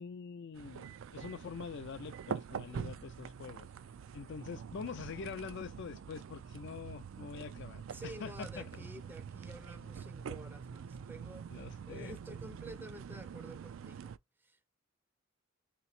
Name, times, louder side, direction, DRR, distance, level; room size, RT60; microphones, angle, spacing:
voice 1, 0.0-3.7 4.1-8.9 11.5-12.1, left 6 dB, 55° left, 0.4 m, -45 dB
sound 1, 0.5-14.2, right 7 dB, 65° right, 0.3 m, -45 dB
voice 2, 7.9-14.8, right 1 dB, 10° right, 0.5 m, -50 dB
3.3 x 3.0 x 4.2 m
head